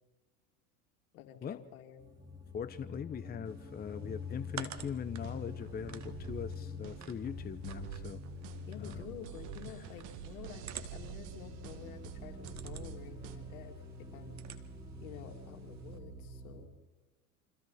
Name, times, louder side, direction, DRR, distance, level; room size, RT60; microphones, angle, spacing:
voice 1, 1.1-2.0 8.7-14.4 15.0-16.7, left 10 dB, 70° left, 5 dB, 2.9 m, -50 dB
sound 1, 2.0-16.7, left 3 dB, 10° right, 6.2 m, -47 dB
voice 2, 2.5-8.2 8.8-9.1, left 7 dB, 20° left, 13 dB, 0.9 m, -41 dB
sound 2, 3.5-16.0, right 9 dB, 40° right, 2.0 m, -53 dB
sound 3, 4.8-13.4, right 10 dB, 60° right, 2.2 m, -48 dB
28.5 x 26.0 x 4.3 m, 1.2 s
hypercardioid pair, 85°, 43 cm